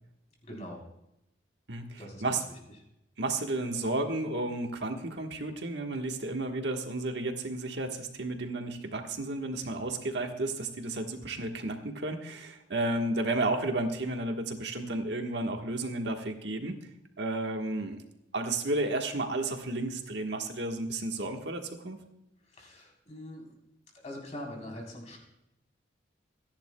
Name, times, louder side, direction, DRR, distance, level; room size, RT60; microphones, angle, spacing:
voice 1, 0.4-0.8 2.0-2.6 22.4-23.5 24.0-25.2, left 1 dB, 35° left, 0 dB, 3.7 m, -43 dB
voice 2, 1.7-2.4 3.2-16.7 17.2-18.0 18.3-22.0, right 2 dB, 60° right, 4 dB, 1.3 m, -32 dB
26.0 x 10.5 x 2.2 m, 0.86 s
head